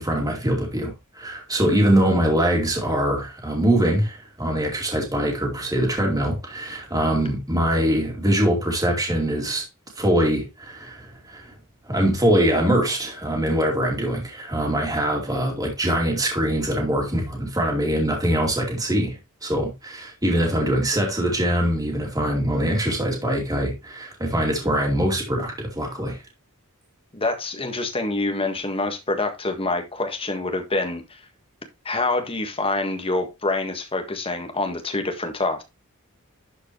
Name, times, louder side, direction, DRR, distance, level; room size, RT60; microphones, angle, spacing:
voice 1, 0.0-9.7 10.0-11.5 11.9-26.2, right 1 dB, 15° right, 2.6 m, -23 dB
voice 2, 27.1-31.2 31.8-35.6, left 2 dB, 25° left, 1.6 m, -26 dB
11.5 x 5.0 x 3.1 m
head